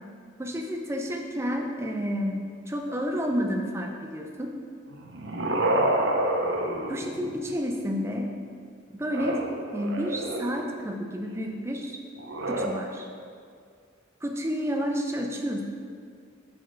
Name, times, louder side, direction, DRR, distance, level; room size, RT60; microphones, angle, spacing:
voice 1, 0.4-2.4 2.7-4.5 6.9-8.3 8.9-9.4 9.7-12.0 12.5-13.1 14.2-15.6, equal, 15° right, 2 dB, 0.4 m, -30 dB
sound 1, 4.9-7.5 9.0-10.8 12.2-12.7, right 1 dB, 60° right, 0.6 m, -28 dB
6.0 x 4.8 x 4.5 m, 2.2 s
head